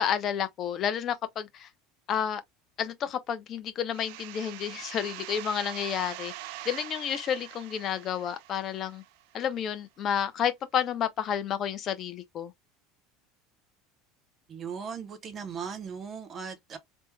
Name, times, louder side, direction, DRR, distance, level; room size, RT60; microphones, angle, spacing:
voice 1, 0.0-1.7 2.1-2.4 2.8-6.3 6.6-9.0 9.3-12.5, left 8 dB, 35° left, 0.5 m, -30 dB
sound 1, 3.9-9.5, right 15 dB, 65° right, 0.4 m, -43 dB
voice 2, 14.5-16.8, right 6 dB, 25° right, 0.7 m, -38 dB
3.4 x 2.1 x 3.0 m
cardioid pair, 160°, 0 cm